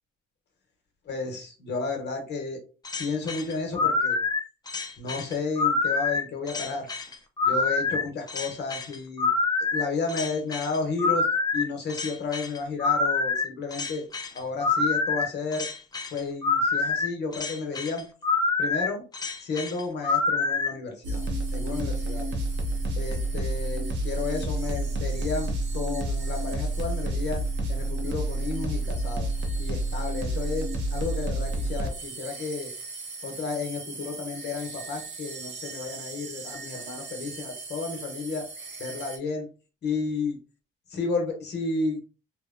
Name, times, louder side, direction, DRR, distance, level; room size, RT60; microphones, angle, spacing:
voice 1, 1.0-2.6 3.0-4.2 5.0-6.9 7.4-9.3 9.7-11.3 11.5-14.0 14.3-15.7 16.1-18.0 18.6-19.0 19.4-21.2 21.5-22.3 22.9-27.4 27.7-29.3 29.6-32.7 33.2-38.4 38.8-39.5 39.8-40.4 40.9-42.0, left 4 dB, 60° left, 2 dB, 1.0 m, -32 dB
Cỗ Máy Hoạt Hình, 2.8-20.7, left 4 dB, 20° left, 0.4 m, -26 dB
sound 1, 21.0-39.2, right 1 dB, 65° right, 0.8 m, -31 dB
2.8 x 2.1 x 2.4 m, 0.36 s
cardioid pair, 90°, 20 cm